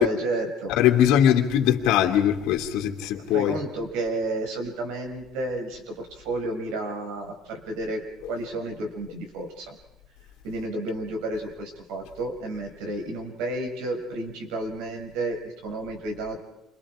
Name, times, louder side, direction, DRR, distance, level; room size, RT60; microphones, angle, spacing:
voice 1, 0.0-0.7 3.3-8.0 8.3-9.8 10.4-16.4, right 2 dB, 90° right, 6.1 m, -31 dB
voice 2, 0.8-3.6, left 10 dB, 75° left, 2.7 m, -21 dB
30.0 x 25.0 x 5.0 m
cardioid pair, 145°, 0 cm